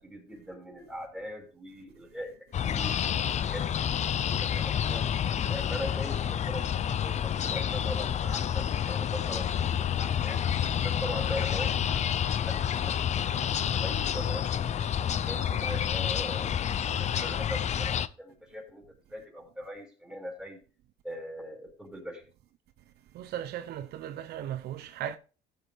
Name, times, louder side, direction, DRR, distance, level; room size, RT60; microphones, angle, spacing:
voice 1, 0.0-3.7 4.2-5.1 5.5-10.4 10.8-12.9 13.3-14.4 15.1-16.6 16.8-20.6 21.0-22.2, equal, 5° right, 5.7 m, -41 dB
sound 1, 2.5-18.1, left 9 dB, 45° left, 0.7 m, -29 dB
voice 2, 23.1-25.2, right 11 dB, 70° right, 0.9 m, -37 dB
15.5 x 7.3 x 3.6 m
cardioid pair, 110°, 17 cm